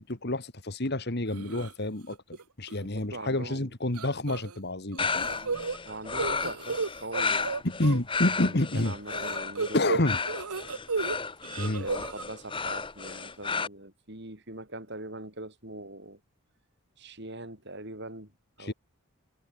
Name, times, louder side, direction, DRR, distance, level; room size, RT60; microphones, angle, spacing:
voice 1, 0.0-2.2 2.6-5.3 7.6-9.0 9.7-10.2 11.6-11.9 18.6-18.7, left 1 dB, 45° left, 1.9 m, -29 dB
sound 1, 1.3-1.7 2.1-2.4 2.7-2.8 3.9-4.6 4.9-8.0 9.1-11.2 11.4-12.2, right 4 dB, 85° right, 1.1 m, -33 dB
voice 2, 2.9-3.7 5.3-7.7 8.4-9.9 11.6-16.2 17.0-18.3 18.6-18.7, right 2 dB, 50° right, 5.4 m, -42 dB
sound 2, 5.0-13.7, left 5 dB, 20° left, 1.4 m, -33 dB
head